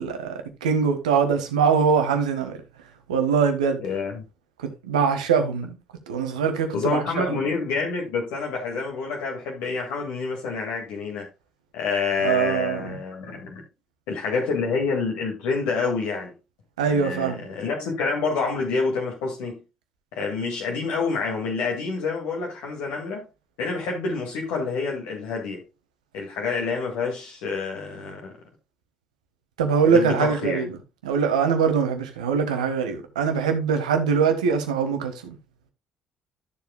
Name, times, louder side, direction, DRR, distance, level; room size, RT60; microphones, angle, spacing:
voice 1, 0.0-2.6 3.1-3.8 4.6-5.8 6.1-7.4 12.2-13.0 16.8-17.5 29.6-30.7 31.0-35.4, right 6 dB, 80° right, 1.4 m, -23 dB
voice 2, 3.8-4.2 6.7-11.3 11.7-13.6 14.1-16.3 16.9-19.6 20.1-23.2 23.6-25.6 26.1-28.3 29.9-30.6, left 4 dB, 70° left, 1.9 m, -27 dB
13.0 x 7.1 x 2.2 m
figure-of-eight pair, 50°, 4 cm